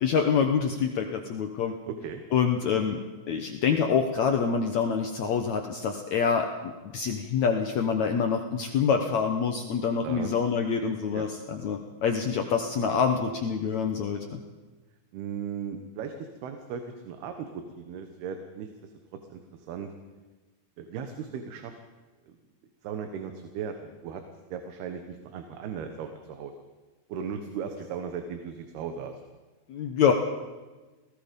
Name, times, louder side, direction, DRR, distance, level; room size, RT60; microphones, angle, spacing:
voice 1, 0.0-1.7 2.3-3.0 3.3-14.4 29.7-30.1, left 6 dB, 70° left, 4 dB, 1.7 m, -26 dB
voice 2, 1.9-2.2 10.0-10.3 11.1-11.3 15.1-18.9 19.3-19.9 20.8-21.7 22.3-22.4 22.8-24.2 24.5-26.5 27.1-29.2, right 7 dB, 75° right, 6 dB, 3.1 m, -37 dB
28.5 x 18.5 x 5.3 m, 1.2 s
omnidirectional pair, 4.7 m